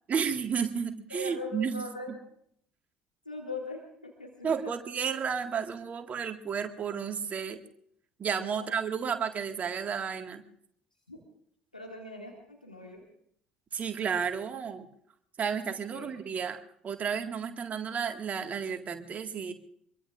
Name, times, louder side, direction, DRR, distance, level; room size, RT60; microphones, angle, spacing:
voice 1, 0.1-2.2 4.4-7.6 8.2-10.4 13.7-14.9 15.4-19.5, right 6 dB, 35° right, 6 dB, 1.9 m, -32 dB
voice 2, 1.1-2.1 3.3-4.7 8.5-8.7 11.1-11.2 11.7-13.0 15.7-16.1, left 2 dB, 90° left, 0 dB, 2.2 m, -41 dB
25.0 x 22.5 x 2.6 m, 0.68 s
figure-of-eight pair, 60°, 4 cm